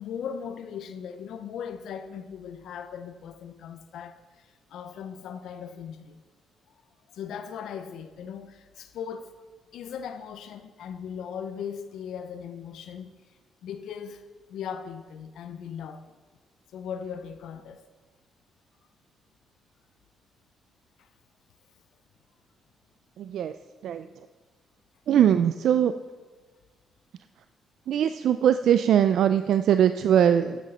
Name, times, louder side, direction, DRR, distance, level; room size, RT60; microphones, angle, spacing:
voice 1, 0.0-6.2 7.1-9.5 9.7-13.1 13.6-16.0 16.7-17.8 21.0-21.1, left 7 dB, 75° left, 0.6 m, -38 dB
voice 2, 23.2-23.6 23.8-24.3 25.1-25.9 27.9-30.6, right 9 dB, 70° right, 0.3 m, -21 dB
9.0 x 6.4 x 5.5 m
cardioid pair, 90°, 0 cm